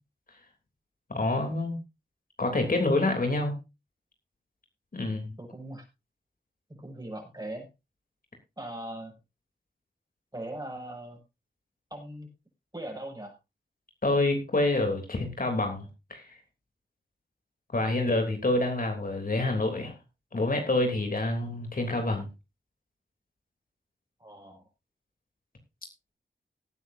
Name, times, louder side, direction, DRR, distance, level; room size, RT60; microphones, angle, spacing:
voice 1, 1.1-1.8 2.4-3.5 4.9-5.3 14.0-16.2 17.7-19.9 20.3-22.3, left 2 dB, 50° left, 4 dB, 3.2 m, -27 dB
voice 2, 5.2-5.9 6.7-7.7 8.6-9.2 10.3-11.2 11.9-12.3 12.7-13.3 24.2-24.6, right 1 dB, 20° right, 2 dB, 6.8 m, -40 dB
19.0 x 9.6 x 2.7 m, 0.26 s
cardioid pair, 45°, 18 cm